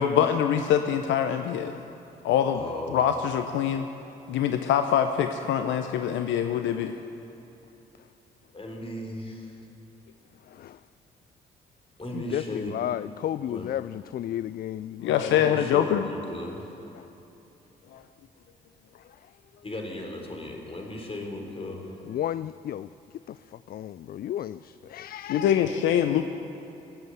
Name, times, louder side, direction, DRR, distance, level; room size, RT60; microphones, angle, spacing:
voice 1, 0.0-1.8 2.2-2.6 2.9-3.9 4.3-6.9 15.0-16.0 17.9-18.0 25.3-26.2, left 9 dB, 70° left, 0.7 m, -24 dB
voice 2, 2.5-3.0 8.5-9.5 12.0-12.8 13.4-13.7 15.2-16.8 19.6-22.0, left 1 dB, 30° left, 3.9 m, -36 dB
voice 3, 12.1-15.4 16.9-17.1 22.1-22.9 23.3-23.4 23.7-25.6, left 11 dB, 50° left, 0.4 m, -33 dB
19.0 x 8.1 x 8.0 m
hypercardioid pair, 45°, 20 cm